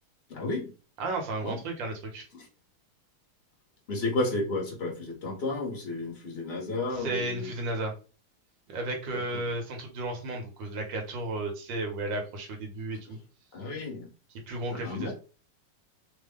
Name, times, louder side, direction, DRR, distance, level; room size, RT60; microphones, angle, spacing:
voice 1, 0.3-0.7 1.4-1.5 2.3-2.5 3.9-7.5 9.1-9.4 13.5-14.1 14.7-15.1, left 2 dB, 40° left, -1 dB, 1.0 m, -32 dB
voice 2, 1.0-2.3 6.9-7.9 8.7-13.2 14.5-15.1, right 2 dB, 65° right, 3 dB, 1.6 m, -33 dB
3.5 x 2.2 x 3.5 m, 0.35 s
omnidirectional pair, 2.3 m